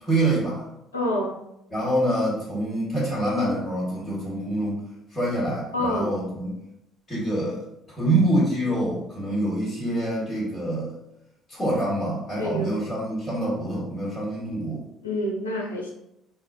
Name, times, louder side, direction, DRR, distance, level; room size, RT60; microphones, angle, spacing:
voice 1, 0.0-0.6 1.7-4.8 5.1-6.5 7.1-7.6 7.9-10.9 11.5-14.8, right 1 dB, 20° left, -8 dB, 1.4 m, -26 dB
voice 2, 0.9-1.3 5.7-6.2 12.4-12.8 15.0-15.9, left 1 dB, 80° left, -1 dB, 0.5 m, -27 dB
4.3 x 2.3 x 2.2 m, 0.83 s
figure-of-eight pair, 50°, 0 cm